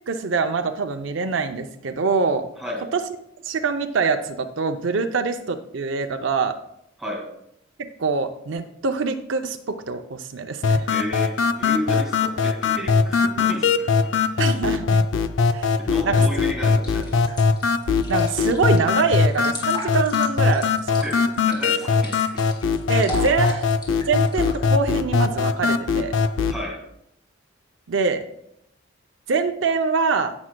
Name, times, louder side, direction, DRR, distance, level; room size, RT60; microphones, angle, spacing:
voice 1, 0.1-2.5 2.9-3.0 3.4-6.6 8.0-10.9 14.4-15.0 15.5-15.7 16.0-16.2 18.1-21.0 22.9-23.7 24.1-26.2 27.9-28.2 29.3-30.3, right 4 dB, 70° right, 6 dB, 0.5 m, -24 dB
voice 2, 2.6-2.9 7.0-7.3 10.9-14.1 15.8-17.2 21.0-22.4 23.4-23.5 26.5-26.9, equal, ahead, -1 dB, 2.1 m, -33 dB
sound 1, 10.6-26.6, left 5 dB, 70° left, 0.5 m, -21 dB
sound 2, 16.8-24.6, equal, 25° left, 2.8 m, -37 dB
17.0 x 6.2 x 2.2 m, 0.77 s
head